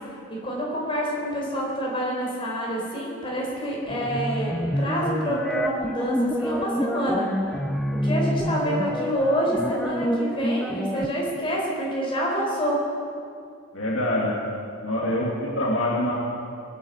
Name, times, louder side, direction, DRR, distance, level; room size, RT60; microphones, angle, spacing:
voice 1, 0.3-7.3 7.9-12.8, equal, 25° left, -3 dB, 4.3 m, -27 dB
sound 1, 3.9-11.1, equal, ahead, 0.6 m, -27 dB
voice 2, 13.7-14.3 14.8-16.1, left 1 dB, 65° left, -4 dB, 2.3 m, -25 dB
20.0 x 8.8 x 8.1 m, 2.3 s
head